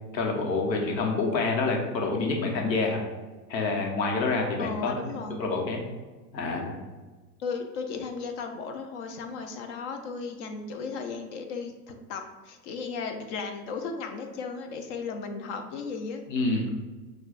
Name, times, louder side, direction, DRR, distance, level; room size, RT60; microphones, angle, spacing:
voice 1, 0.1-3.0 3.5-4.9 5.4-5.8 6.3-6.8 16.3-16.7, left 3 dB, 85° left, 1 dB, 1.1 m, -27 dB
voice 2, 4.6-5.4 7.4-16.2, left 5 dB, 45° left, 5 dB, 0.6 m, -35 dB
6.0 x 2.3 x 2.5 m, 1.3 s
hypercardioid pair, 125°, 50 cm